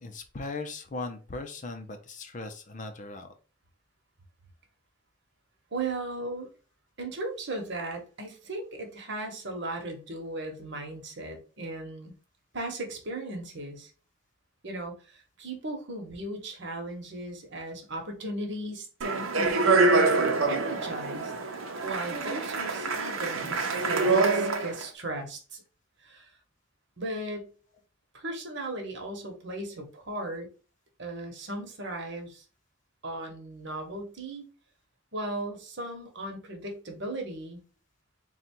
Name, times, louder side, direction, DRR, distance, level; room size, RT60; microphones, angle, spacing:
voice 1, 0.0-3.3, left 3 dB, 40° left, 7 dB, 0.6 m, -38 dB
voice 2, 5.7-6.5 7.0-12.1 12.5-13.9 14.6-20.2 20.5-21.3 21.8-25.6 26.0-26.3 27.0-27.5 28.1-30.5 31.0-32.4 33.0-34.4 35.1-37.6, right 2 dB, 60° right, 3 dB, 1.1 m, -37 dB
Speech, 19.0-24.8, right 3 dB, 85° right, 0.7 m, -25 dB
3.9 x 2.3 x 4.4 m, 0.35 s
head